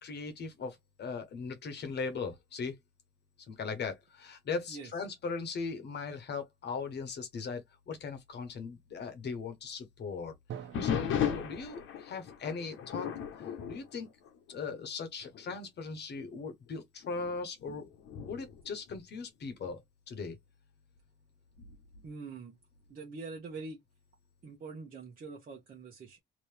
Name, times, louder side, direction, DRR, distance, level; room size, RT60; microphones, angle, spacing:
voice 1, 0.0-2.8 3.5-10.3 10.8-13.1 13.4-14.1 14.5-17.9 18.2-20.4, left 4 dB, 55° left, 1.1 m, -39 dB
Drum, 10.5-14.2, right 9 dB, 70° right, 0.9 m, -50 dB
sound 1, 10.7-14.9 15.2-15.6 16.2-16.3 17.0-19.7 21.6-22.1, left 8 dB, 80° left, 1.0 m, -37 dB
voice 2, 22.0-22.6 22.9-23.8 24.4-26.2, right 4 dB, 45° right, 1.1 m, -44 dB
2.9 x 2.7 x 3.4 m
cardioid pair, 90°, 20 cm